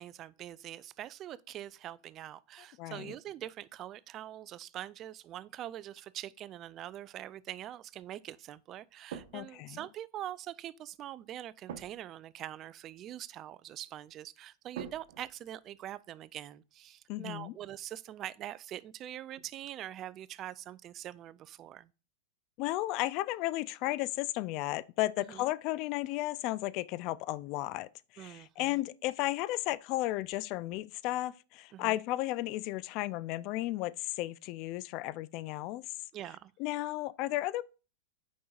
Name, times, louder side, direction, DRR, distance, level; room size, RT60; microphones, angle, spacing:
voice 1, 0.0-21.9 25.2-25.5 28.2-28.8 31.7-32.0 36.1-36.5, right 12 dB, 35° right, 0.4 m, -44 dB
voice 2, 2.8-3.1 9.3-9.8 17.1-17.5 22.6-35.8 36.6-37.6, left 17 dB, 50° left, 0.4 m, -34 dB
sound 1, 9.1-9.7 11.7-12.2 14.7-15.9 19.4-19.7, right 7 dB, 70° right, 1.1 m, -46 dB
8.4 x 5.4 x 2.4 m
hypercardioid pair, 110°, 0 cm